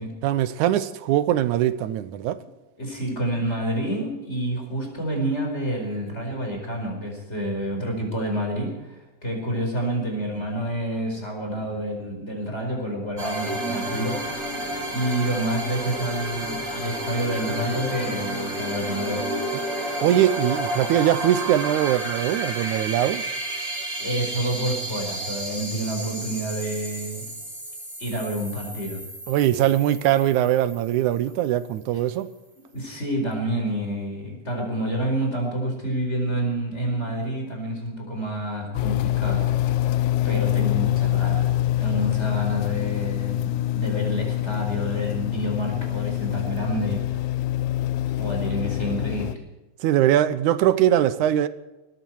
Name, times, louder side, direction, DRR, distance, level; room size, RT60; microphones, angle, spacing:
voice 1, 0.2-2.4 19.8-23.2 29.3-32.3 49.8-51.5, right 12 dB, 80° right, 2.2 m, -21 dB
voice 2, 2.8-14.6 14.9-19.4 24.0-27.2 28.0-29.0 32.7-39.9 40.2-47.2 48.2-49.4, right 1 dB, 20° left, 4.9 m, -28 dB
sound 1, 13.2-31.6, right 1 dB, 25° right, 4.1 m, -31 dB
sound 2, 38.7-49.4, left 14 dB, 80° left, 2.0 m, -25 dB
19.0 x 14.5 x 4.6 m
omnidirectional pair, 3.5 m